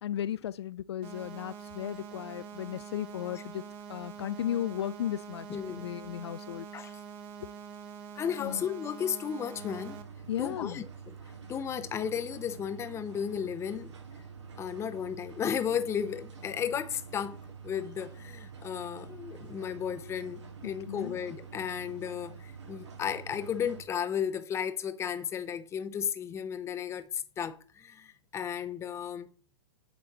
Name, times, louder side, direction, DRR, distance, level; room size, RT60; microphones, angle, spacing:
voice 1, 0.0-3.6 3.9-6.7 8.4-8.6 10.3-10.8 20.9-21.2, left 11 dB, 70° left, 0.4 m, -35 dB
sound 1, 1.0-10.0, right 6 dB, 35° right, 1.3 m, -45 dB
voice 2, 5.5-5.9 6.7-6.9 8.2-10.0 10.4-10.9 11.5-13.9 14.6-17.4 17.6-29.3, left 8 dB, 20° left, 0.8 m, -34 dB
sound 2, 9.5-23.8, right 5 dB, 85° right, 2.3 m, -47 dB
8.8 x 3.4 x 6.8 m
hypercardioid pair, 120°, 15 cm